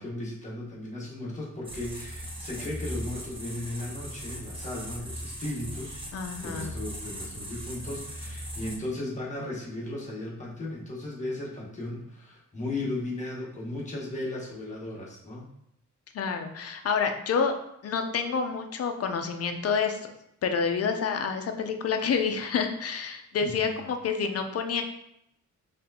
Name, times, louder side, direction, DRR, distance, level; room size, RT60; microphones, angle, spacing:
voice 1, 0.0-6.1 6.4-15.5 23.4-23.8, left 2 dB, 25° left, -5 dB, 1.1 m, -36 dB
sound 1, 1.6-8.8, equal, 15° right, 0.5 m, -39 dB
voice 2, 6.1-6.8 16.1-17.5 17.8-20.1 20.4-24.8, left 6 dB, 50° left, 5 dB, 0.5 m, -28 dB
4.2 x 3.3 x 2.7 m, 0.77 s
wide cardioid pair, 175°, 31 cm